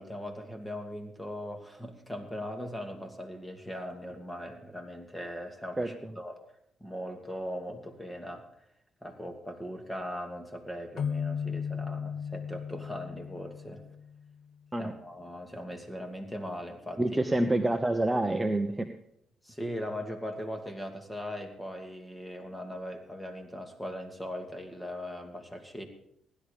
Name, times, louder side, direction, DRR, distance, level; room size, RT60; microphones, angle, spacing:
voice 1, 0.0-6.4 6.8-8.4 9.0-13.8 14.8-17.0 19.4-25.9, equal, 10° left, 4 dB, 2.5 m, -39 dB
voice 2, 5.8-6.1 14.7-14.9 17.0-18.9, right 1 dB, 15° right, 6 dB, 0.9 m, -27 dB
sound 1, 11.0-14.5, left 7 dB, 60° left, 0.5 m, -36 dB
16.0 x 11.5 x 5.2 m, 0.75 s
cardioid pair, 90°, 0 cm